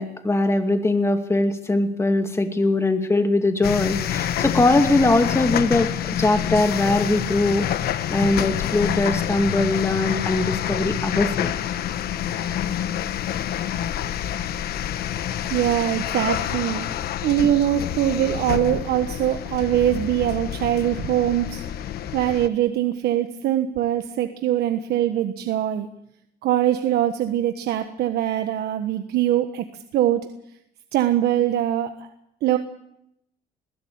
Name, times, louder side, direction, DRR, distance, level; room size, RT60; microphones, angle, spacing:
voice 1, 0.0-7.7 8.1-11.5, left 2 dB, 15° left, 6 dB, 2.4 m, -21 dB
sound 1, 3.6-22.5, left 11 dB, 65° left, 1.2 m, -27 dB
voice 2, 15.5-16.8 17.2-21.6 22.1-25.9 26.4-29.6 29.9-30.2 30.9-31.9 32.4-32.6, right 12 dB, 75° right, 7 dB, 1.3 m, -22 dB
21.0 x 15.0 x 8.7 m, 0.79 s
cardioid pair, 110°, 17 cm